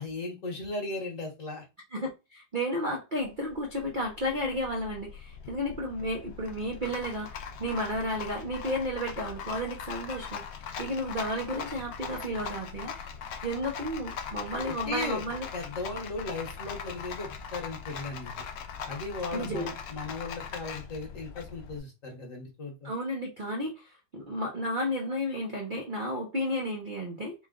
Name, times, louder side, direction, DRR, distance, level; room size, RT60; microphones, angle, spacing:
voice 1, 0.0-1.6 14.6-15.2 15.5-18.4 18.8-22.9, left 3 dB, 45° left, 1.4 m, -37 dB
voice 2, 1.9-13.1 13.4-15.5 19.3-19.7 22.8-27.3, equal, 45° right, 0.6 m, -33 dB
Rattle, 3.2-21.8, left 7 dB, 65° left, 1.0 m, -41 dB
4.4 x 2.3 x 3.7 m
omnidirectional pair, 2.1 m